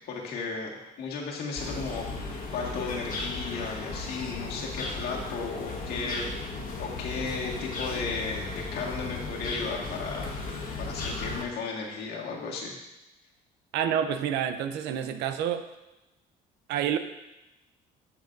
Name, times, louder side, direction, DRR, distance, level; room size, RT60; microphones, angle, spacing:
voice 1, 0.1-6.3 6.8-10.4 10.8-12.7, left 4 dB, 75° left, -2 dB, 1.8 m, -35 dB
sound 1, 1.6-11.4, left 3 dB, 55° left, 1.6 m, -35 dB
voice 2, 13.7-15.6 16.7-17.0, right 9 dB, 85° right, 9 dB, 0.7 m, -28 dB
13.5 x 5.6 x 2.6 m, 0.97 s
cardioid pair, 110°, 17 cm